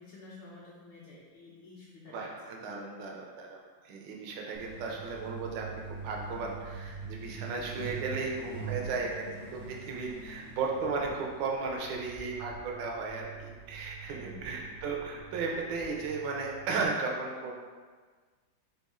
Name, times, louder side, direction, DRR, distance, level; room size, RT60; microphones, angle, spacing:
voice 1, 0.0-2.5 14.1-14.5, left 2 dB, 70° left, -7 dB, 1.3 m, -50 dB
voice 2, 2.1-3.6 3.8-17.5, right 4 dB, 70° right, 0 dB, 1.2 m, -35 dB
Truck, 4.5-16.9, right 5 dB, 10° left, 0.5 m, -44 dB
4.1 x 3.3 x 3.6 m, 1.5 s
omnidirectional pair, 2.2 m